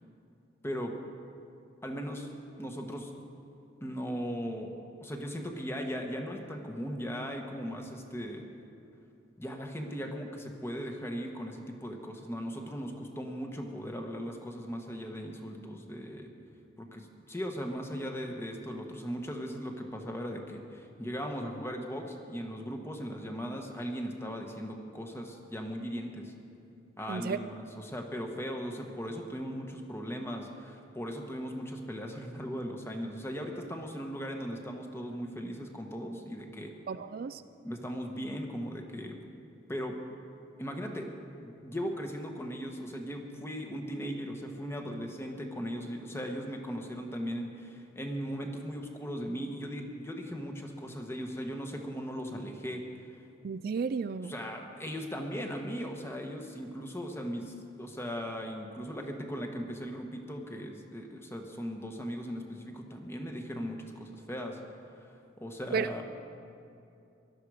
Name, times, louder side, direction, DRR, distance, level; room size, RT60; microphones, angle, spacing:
voice 1, 1.8-2.3 2.6-3.1 3.8-4.7 5.0-8.4 9.4-16.3 16.8-26.3 27.0-36.7 37.6-39.2 39.7-40.0 40.6-41.1 41.4-52.8 54.2-64.6 65.0-65.1 65.4-66.0, equal, 15° left, 3 dB, 1.2 m, -38 dB
voice 2, 36.9-37.4 53.4-54.3 65.7-65.9, right 5 dB, 50° right, 12 dB, 0.3 m, -32 dB
17.0 x 12.0 x 4.9 m, 2.6 s
head